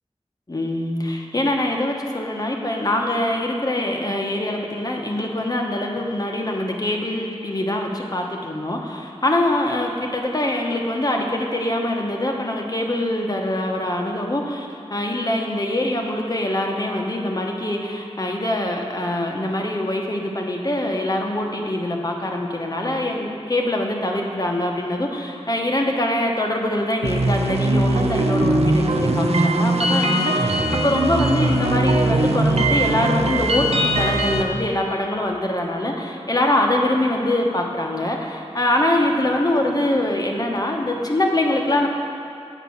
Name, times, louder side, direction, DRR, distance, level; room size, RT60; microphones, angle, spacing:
voice 1, 0.5-41.9, left 1 dB, 35° left, 1 dB, 1.0 m, -23 dB
sound 1, 27.0-34.4, right 2 dB, 70° right, 0.7 m, -20 dB
8.1 x 5.0 x 7.2 m, 2.7 s
wide cardioid pair, 65°, 11 cm